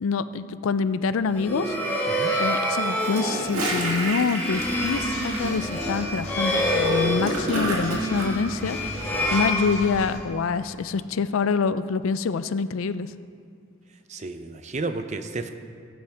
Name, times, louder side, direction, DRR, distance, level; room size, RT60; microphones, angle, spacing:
voice 1, 0.0-1.8 2.4-13.1, left 5 dB, 75° left, 14 dB, 0.4 m, -26 dB
sound 1, 1.2-10.3, equal, 10° left, 1.4 m, -27 dB
Gurgling / Toilet flush, 2.9-8.3, right 1 dB, 85° right, 2.0 m, -30 dB
sound 2, 4.5-10.2, left 1 dB, 60° left, 2.1 m, -38 dB
voice 2, 6.0-7.1 9.1-9.3 14.1-15.5, right 3 dB, 35° right, 9 dB, 0.5 m, -34 dB
15.5 x 8.8 x 3.4 m, 2.5 s
head